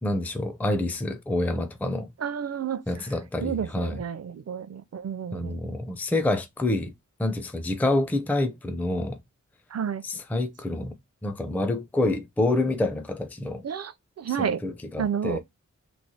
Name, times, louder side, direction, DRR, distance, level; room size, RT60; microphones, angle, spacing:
voice 1, 0.0-2.1 2.9-4.0 5.3-6.9 7.2-9.2 10.0-10.9 11.2-13.6 14.4-15.4, left 2 dB, 5° left, 0.4 m, -27 dB
voice 2, 2.2-2.8 3.4-5.8 9.7-10.0 13.6-14.6 15.0-15.4, right 8 dB, 55° right, 0.4 m, -30 dB
3.1 x 2.0 x 4.0 m
wide cardioid pair, 90°, 30 cm